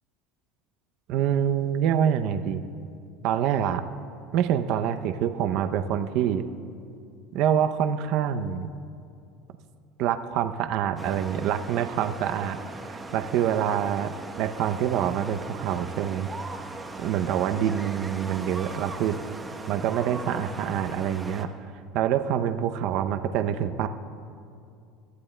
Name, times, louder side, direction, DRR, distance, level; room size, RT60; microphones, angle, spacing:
voice 1, 1.1-2.6 3.2-3.8 4.3-6.4 7.3-8.7 10.0-12.6 12.9-14.1 14.4-16.3 17.0-19.2 19.7-21.5 21.9-23.9, right 9 dB, 60° right, 8 dB, 0.5 m, -26 dB
sound 1, 11.0-21.4, right 3 dB, 15° right, 0.9 m, -39 dB
21.0 x 14.0 x 2.2 m, 2.4 s
supercardioid pair, 120°, 0 cm